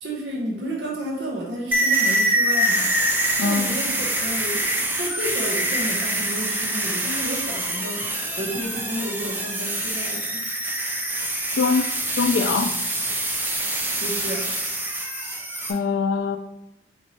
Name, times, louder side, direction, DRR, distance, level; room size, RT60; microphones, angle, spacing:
voice 1, 0.0-2.9 3.4-10.4 14.0-14.5, right 1 dB, 60° right, -2 dB, 0.9 m, -32 dB
sound 1, 1.7-15.7, right 1 dB, 10° right, 0.4 m, -25 dB
voice 2, 3.4-3.8 11.6-12.8 15.7-16.4, left 5 dB, 70° left, 7 dB, 0.3 m, -23 dB
4.3 x 3.0 x 4.1 m, 0.86 s
head